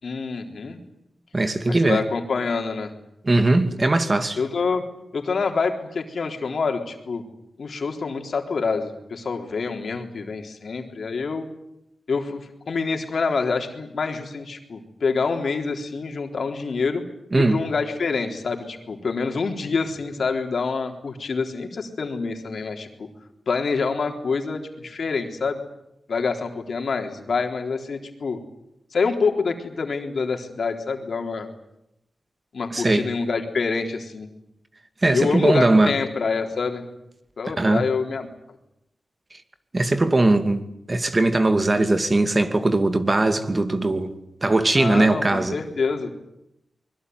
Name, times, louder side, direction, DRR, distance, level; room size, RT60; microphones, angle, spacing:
voice 1, 0.0-0.8 1.7-2.9 4.4-4.8 5.1-7.2 7.6-11.5 12.1-17.0 17.3-23.1 23.5-25.6 26.1-28.4 28.9-31.5 32.5-34.3 35.1-36.9 37.4-38.3 44.8-46.1, left 4 dB, 70° left, 3.9 m, -26 dB
voice 2, 1.3-2.0 3.2-4.4 17.3-17.6 32.7-33.1 35.0-35.9 37.6-37.8 39.7-44.1 44.4-45.6, right 2 dB, 35° right, 2.6 m, -20 dB
24.5 x 22.0 x 9.6 m
cardioid pair, 65°, 0 cm